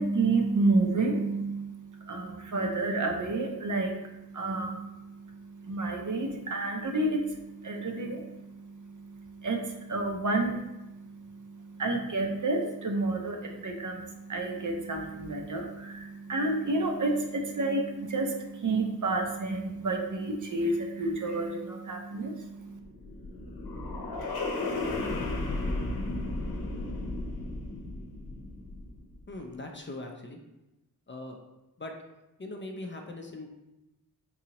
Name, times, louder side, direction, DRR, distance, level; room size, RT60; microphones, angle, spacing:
voice 1, 0.0-22.8, right 2 dB, 55° right, 2 dB, 0.6 m, -30 dB
sound 1, 22.6-29.1, left 2 dB, 75° left, 0.7 m, -34 dB
voice 2, 29.3-30.4 31.1-31.4 31.8-31.9 32.4-33.5, left 2 dB, 35° left, 2 dB, 0.4 m, -40 dB
3.9 x 2.7 x 2.9 m, 0.97 s
wide cardioid pair, 75°, 37 cm